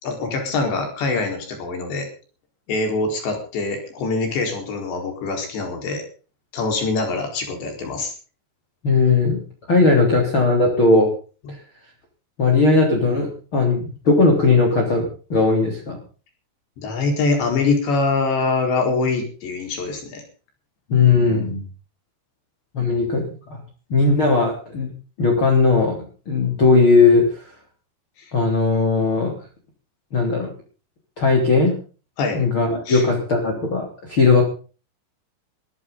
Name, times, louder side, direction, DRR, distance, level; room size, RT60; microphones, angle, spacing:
voice 1, 0.0-2.1 2.7-6.0 6.5-8.1 16.8-20.2 28.2-28.3 32.2-32.4 32.9-33.1, left 3 dB, 90° left, 4 dB, 6.7 m, -24 dB
voice 2, 8.8-9.4 9.7-11.1 11.5-11.6 12.4-16.0 20.9-21.6 22.7-23.6 23.9-24.9 25.2-26.0 26.3-27.5 28.3-29.3 30.1-30.5 31.2-31.7 32.3-34.5, left 3 dB, 30° left, 1 dB, 4.0 m, -18 dB
22.5 x 14.0 x 4.0 m, 0.38 s
omnidirectional pair, 4.9 m